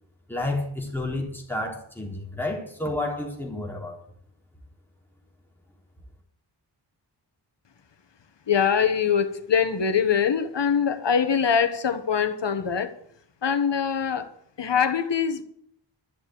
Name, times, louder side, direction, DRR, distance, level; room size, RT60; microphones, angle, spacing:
voice 1, 0.3-4.0, left 2 dB, 5° left, 4.0 m, -30 dB
voice 2, 8.5-12.9 13.4-14.3 14.6-15.4, left 7 dB, 70° left, 1.6 m, -23 dB
12.5 x 7.4 x 9.3 m
wide cardioid pair, 120°, 44 cm